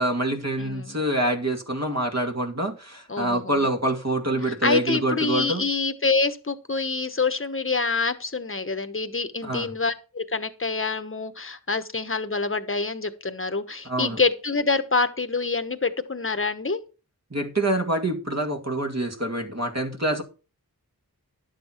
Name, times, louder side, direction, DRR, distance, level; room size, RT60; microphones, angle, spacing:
voice 1, 0.0-5.6 9.4-9.7 13.8-14.2 17.3-20.2, right 1 dB, 45° right, 2.1 m, -26 dB
voice 2, 0.6-1.0 3.1-3.6 4.5-16.8, left 4 dB, 35° left, 1.2 m, -26 dB
11.5 x 7.5 x 4.5 m
wide cardioid pair, 45°, 38 cm